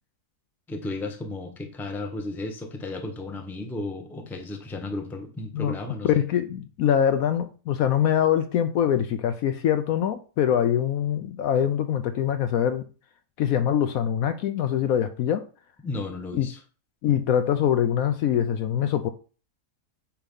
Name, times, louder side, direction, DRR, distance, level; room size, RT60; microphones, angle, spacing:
voice 1, 0.7-6.2 15.8-16.6, left 2 dB, ahead, 0.6 m, -34 dB
voice 2, 6.0-12.8 13.4-15.4 16.3-16.5 17.0-19.1, left 9 dB, 70° left, 0.9 m, -23 dB
8.9 x 3.0 x 5.3 m
omnidirectional pair, 1.7 m